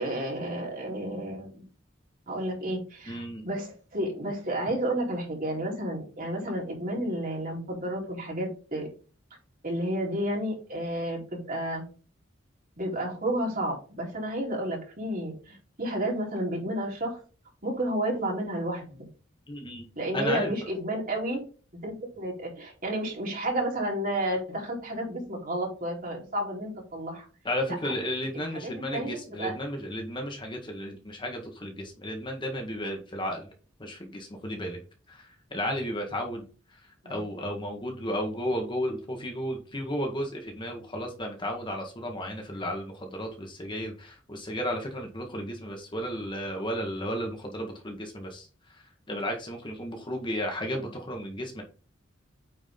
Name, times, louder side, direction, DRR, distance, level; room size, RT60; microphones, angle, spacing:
voice 1, 0.0-1.7 2.3-8.9 9.6-11.9 12.8-17.2 17.6-19.1 20.0-21.4 21.8-27.3 27.7-27.9 28.3-29.5 37.0-37.2 50.7-50.9, right 1 dB, 45° right, -2 dB, 4.1 m, -31 dB
voice 2, 3.1-3.4 19.5-19.8 20.1-20.5 27.4-33.5 33.8-34.8 35.1-36.5 37.1-48.5 49.1-51.6, equal, 25° left, 2 dB, 1.7 m, -33 dB
9.1 x 5.0 x 3.8 m, 0.37 s
head